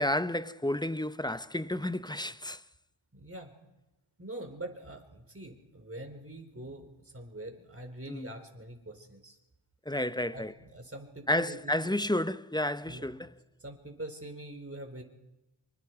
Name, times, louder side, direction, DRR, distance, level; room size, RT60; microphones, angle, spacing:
voice 1, 0.0-2.6 8.1-8.3 9.9-10.5 11.3-13.3, left 1 dB, 10° left, 0.7 m, -31 dB
voice 2, 3.1-3.5 4.2-9.4 10.3-11.9 12.8-13.3 13.6-15.0, right 1 dB, 25° right, 4.3 m, -44 dB
26.5 x 24.0 x 4.7 m
wide cardioid pair, 70°, 49 cm